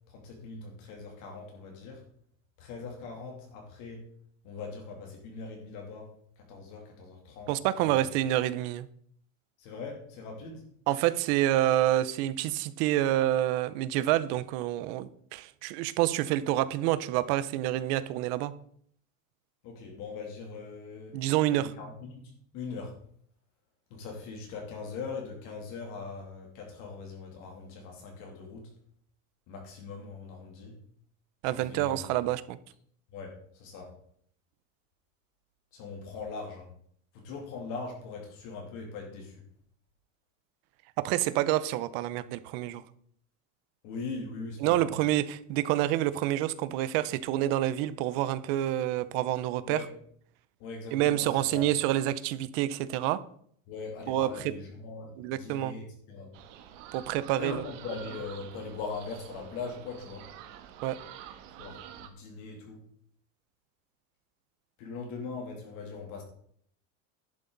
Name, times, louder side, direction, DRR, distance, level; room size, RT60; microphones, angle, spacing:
voice 1, 0.1-2.0 2.6-4.0 4.4-6.1 6.5-7.5 7.8-8.0 9.6-10.7 19.6-21.1 21.5-22.9 23.9-28.6 29.5-30.7 31.6-32.0 33.1-33.9 35.7-36.7 37.1-39.4 43.8-44.9 49.7-49.8 50.6-51.6 53.7-56.3 57.4-60.3 61.6-62.8 64.8-66.2, left 4 dB, 50° left, 1 dB, 2.9 m, -41 dB
voice 2, 7.5-8.9 10.9-18.5 21.1-21.7 31.4-32.6 41.0-42.8 44.6-49.8 50.9-53.2 54.1-54.4 55.2-55.7 56.9-57.6 60.8-61.0, right 14 dB, 55° right, 15 dB, 0.7 m, -28 dB
sound 1, 56.3-62.1, right 10 dB, 75° right, 1.5 m, -48 dB
11.0 x 8.5 x 4.0 m, 0.63 s
cardioid pair, 175°, 38 cm